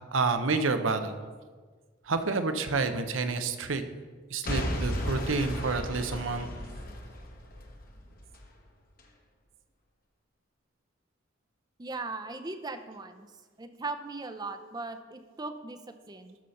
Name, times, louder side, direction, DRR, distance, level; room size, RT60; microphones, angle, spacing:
voice 1, 0.1-1.1 2.1-3.8 4.3-6.5, right 4 dB, 90° right, 9 dB, 0.8 m, -29 dB
Boom / Shatter / Crushing, 4.4-8.5 9.0-9.1, equal, 45° left, 1.1 m, -35 dB
voice 2, 11.8-13.3 13.6-16.4, right 3 dB, 20° right, 8 dB, 0.5 m, -38 dB
12.5 x 4.2 x 6.5 m, 1.5 s
head